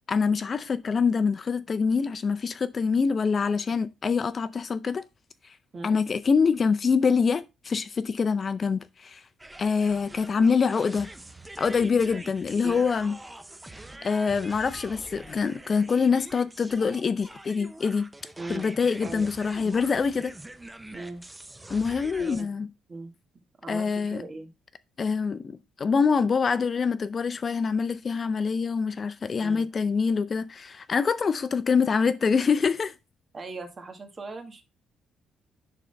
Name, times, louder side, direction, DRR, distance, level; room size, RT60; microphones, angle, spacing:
voice 1, 0.1-5.0 5.8-9.2 9.6-11.1 11.6-13.1 14.0-18.0 18.5-20.3 21.7-22.7 23.7-24.2 25.0-32.9, left 5 dB, 35° left, 0.4 m, -25 dB
sound 1, 9.4-22.4, right 1 dB, 10° right, 0.6 m, -44 dB
voice 2, 18.4-18.7 19.0-19.3 20.9-21.2 22.2-22.5 22.9-23.1 23.6-24.5 29.4-29.7 33.3-34.6, right 3 dB, 35° right, 1.6 m, -39 dB
10.5 x 3.8 x 3.3 m
cardioid pair, 115°, 0 cm